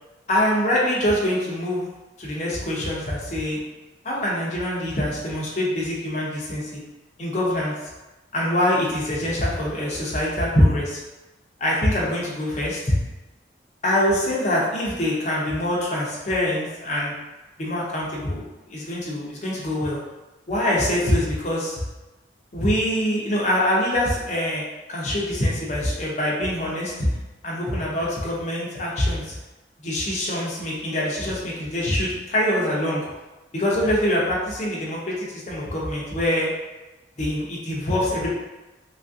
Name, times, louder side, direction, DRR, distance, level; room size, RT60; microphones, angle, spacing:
voice 1, 0.3-1.8 2.2-3.6 4.0-6.8 7.2-7.7 8.3-11.0 11.6-13.0 13.8-17.1 17.6-20.0 20.5-21.8 22.5-24.6 24.9-27.1 27.4-29.3 29.8-33.1 33.5-36.5 37.2-38.3, left 1 dB, 40° left, -5 dB, 0.5 m, -24 dB
3.2 x 2.4 x 2.5 m, 1.1 s
head